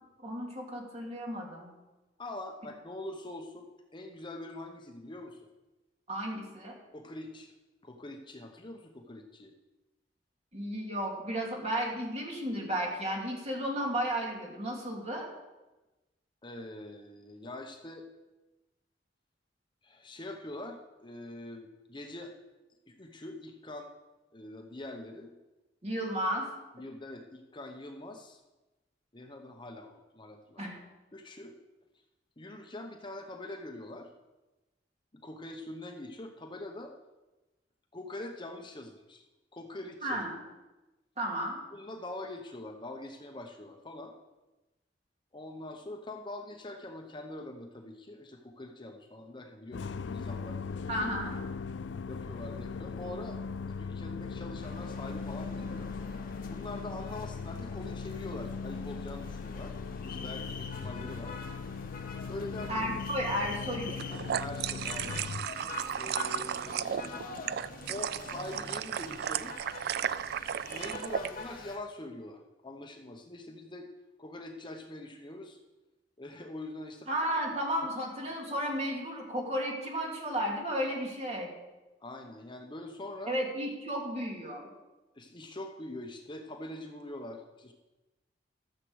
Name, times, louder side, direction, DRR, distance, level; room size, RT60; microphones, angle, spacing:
voice 1, 0.2-1.7 6.1-6.7 10.5-15.3 25.8-26.5 30.6-30.8 40.0-40.4 41.2-41.6 50.9-51.4 62.7-64.1 77.1-81.5 83.3-84.7, equal, 35° right, -1 dB, 2.7 m, -33 dB
voice 2, 2.2-5.5 6.9-7.5 7.8-9.5 16.4-18.1 19.8-22.3 22.9-23.9 24.3-25.3 26.7-28.4 29.1-30.7 31.1-31.5 32.4-34.1 35.1-36.9 37.9-39.2 39.5-40.2 41.7-44.1 45.3-51.0 52.1-53.4 53.7-55.9 56.5-59.7 60.0-61.3 62.3-62.9 64.1-65.3 66.0-67.1 67.9-69.6 70.6-73.9 74.2-75.6 76.2-77.1 82.0-83.4 85.2-87.7, left 1 dB, 25° left, 3 dB, 0.9 m, -44 dB
sound 1, 49.7-65.5, left 5 dB, 75° left, 0.4 m, -39 dB
sound 2, 54.6-71.8, left 3 dB, 50° left, 1.6 m, -46 dB
sound 3, 63.9-71.3, right 9 dB, 60° right, 0.3 m, -34 dB
13.5 x 7.6 x 6.4 m, 1.1 s
head